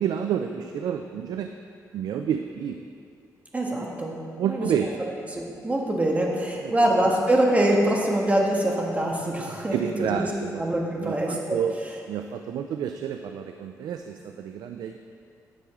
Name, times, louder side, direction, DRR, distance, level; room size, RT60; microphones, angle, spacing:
voice 1, 0.0-1.5 1.9-2.8 4.4-5.0 6.6-6.7 9.7-10.6 11.0-11.7 12.1-15.0, right 9 dB, 80° right, 6 dB, 0.4 m, -29 dB
voice 2, 3.5-4.2 4.4-4.7 5.3-10.3 10.6-11.6, right 1 dB, 20° right, -1 dB, 1.4 m, -24 dB
9.9 x 7.7 x 3.7 m, 2.4 s
cardioid pair, 90°, 7 cm